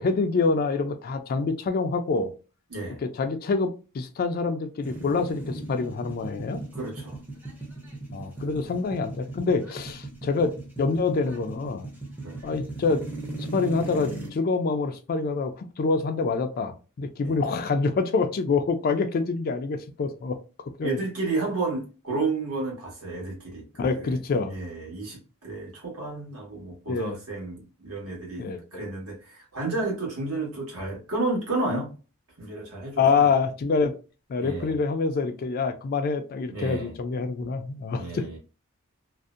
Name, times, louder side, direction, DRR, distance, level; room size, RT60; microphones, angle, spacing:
voice 1, 0.0-2.3 3.0-6.6 8.1-11.9 12.4-13.0 13.5-20.4 20.8-21.0 23.8-24.5 26.9-27.2 28.4-28.6 33.0-34.0 34.3-38.3, left 4 dB, 40° left, 0.3 m, -26 dB
voice 2, 2.7-3.0 6.7-7.2 8.3-8.5 12.2-12.4 17.2-17.4 20.8-24.1 24.4-28.4 28.7-31.9 32.4-33.3 34.4-34.8 36.5-37.0 37.9-38.4, right 3 dB, 75° right, 1.2 m, -32 dB
sound 1, 4.8-14.3, right 2 dB, 10° right, 0.5 m, -38 dB
2.6 x 2.1 x 2.4 m
head